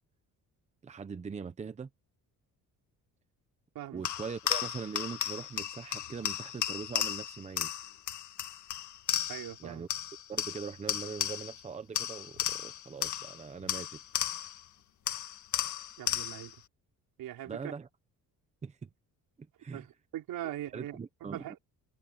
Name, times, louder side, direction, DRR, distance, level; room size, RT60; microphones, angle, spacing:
voice 1, 0.8-1.9 3.9-7.7 9.6-9.9 10.3-14.0 17.4-17.9 18.6-18.9 19.4-19.9 20.7-21.6, right 5 dB, 20° right, 0.9 m, -41 dB
sound 1, 4.0-9.6 9.9-11.6 12.0-14.6 15.1-16.6, left 11 dB, 60° left, 1.7 m, -35 dB
voice 2, 9.3-9.8 16.0-16.5 17.2-17.7 19.7-19.8 20.1-21.0 21.3-21.6, right 13 dB, 90° right, 5.1 m, -40 dB
cardioid pair, 180°, 34 cm